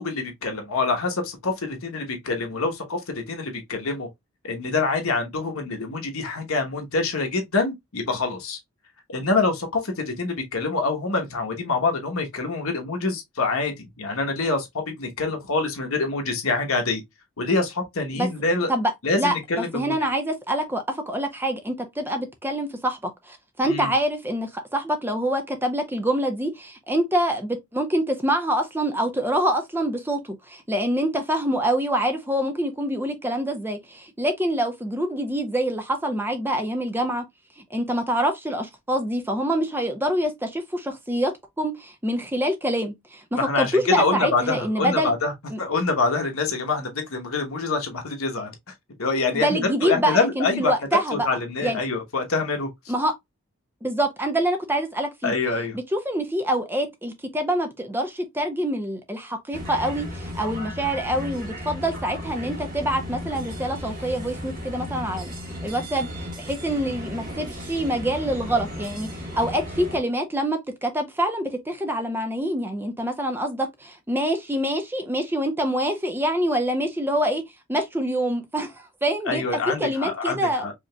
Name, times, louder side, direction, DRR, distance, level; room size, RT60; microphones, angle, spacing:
voice 1, 0.0-4.1 4.4-8.6 9.1-17.0 17.4-18.7 19.0-19.9 23.6-23.9 43.3-45.3 45.6-48.5 49.0-50.7 51.1-52.7 55.2-55.8 79.3-80.7, left 3 dB, 80° left, 1.1 m, -25 dB
voice 2, 18.7-37.2 37.7-41.3 41.6-45.1 45.5-45.6 49.3-51.3 51.6-51.8 52.9-53.2 53.8-55.3 55.7-65.3 65.6-66.1 66.4-69.1 69.3-77.4 77.7-80.7, right 1 dB, 10° right, 0.5 m, -26 dB
sound 1, 59.5-70.0, equal, 40° right, 1.4 m, -35 dB
5.0 x 2.9 x 2.3 m
head